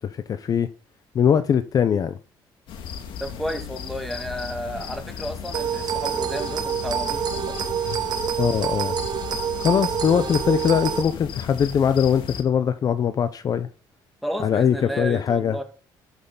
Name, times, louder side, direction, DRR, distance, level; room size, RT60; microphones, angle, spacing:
voice 1, 0.3-0.7 1.1-2.1 8.4-9.0 9.6-13.7 14.4-15.5, left 8 dB, 45° left, 0.8 m, -21 dB
sound 1, 2.7-12.4, left 7 dB, 80° left, 2.2 m, -35 dB
voice 2, 3.2-7.6 14.2-15.6, equal, ahead, 2.3 m, -32 dB
sound 2, 5.5-11.0, right 9 dB, 55° right, 1.3 m, -27 dB
12.5 x 6.5 x 4.0 m
cardioid pair, 105°, 9 cm